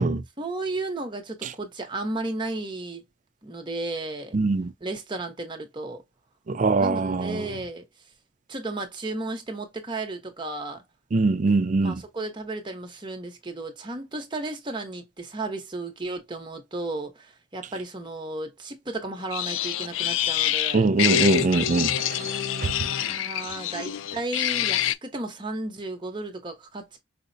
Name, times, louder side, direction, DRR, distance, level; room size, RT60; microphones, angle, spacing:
voice 1, 0.4-3.0 3.4-4.4 4.8-6.0 6.8-7.8 8.5-10.8 11.8-20.9 22.1-27.0, right 2 dB, 25° right, 0.9 m, -34 dB
voice 2, 4.3-4.7 6.5-7.4 11.1-11.9 20.7-21.9, right 3 dB, 40° right, 0.4 m, -22 dB
sound 1, 19.3-24.9, left 11 dB, 75° left, 0.3 m, -26 dB
5.0 x 2.0 x 2.6 m
head